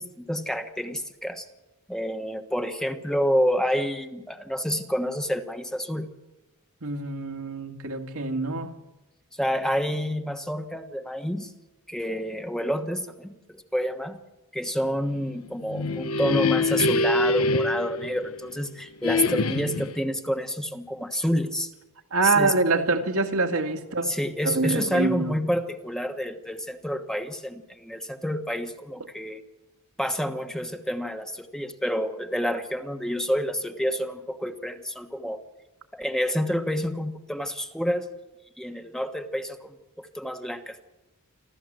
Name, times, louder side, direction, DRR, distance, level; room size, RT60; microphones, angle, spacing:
voice 1, 0.0-1.5 1.9-6.1 9.3-11.5 11.9-14.2 14.5-21.7 22.2-22.5 24.0-29.4 30.0-35.4 35.9-38.1 38.6-40.8, equal, 5° left, 6 dB, 1.2 m, -28 dB
voice 2, 6.8-8.7 22.1-24.2 24.4-25.4, right 3 dB, 80° right, 3 dB, 2.3 m, -25 dB
sound 1, 15.5-18.6 19.0-20.0, left 3 dB, 85° left, 1.2 m, -25 dB
27.5 x 13.5 x 7.8 m, 1.0 s
head